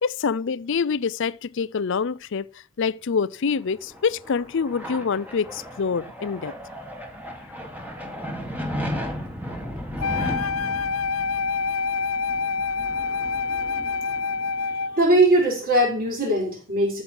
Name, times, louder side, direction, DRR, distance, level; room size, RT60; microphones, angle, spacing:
voice 1, 0.0-2.5 2.8-6.5, left 5 dB, 60° left, 0.5 m, -26 dB
sound 1, 3.6-14.9, equal, 10° right, 2.1 m, -35 dB
Wind instrument woodwind instrument, 10.0-15.0, left 5 dB, 90° left, 0.8 m, -26 dB
voice 2, 15.0-17.0, right 1 dB, 45° right, 5.3 m, -20 dB
13.5 x 7.5 x 4.7 m
head